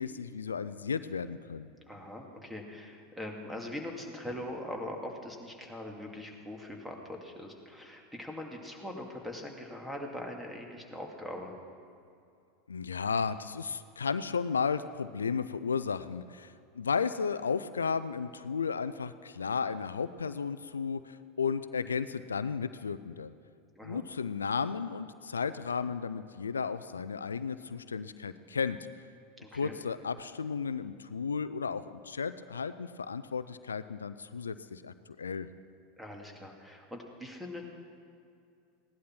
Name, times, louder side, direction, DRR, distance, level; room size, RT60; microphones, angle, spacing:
voice 1, 0.0-1.7 12.7-23.3 23.8-28.8 29.5-35.5, left 5 dB, 90° left, 13 dB, 0.4 m, -34 dB
voice 2, 1.9-11.6 23.8-24.0 29.4-29.8 36.0-37.6, left 1 dB, 5° right, 1 dB, 2.3 m, -42 dB
16.5 x 11.0 x 5.9 m, 2.5 s
hypercardioid pair, 85°, 0 cm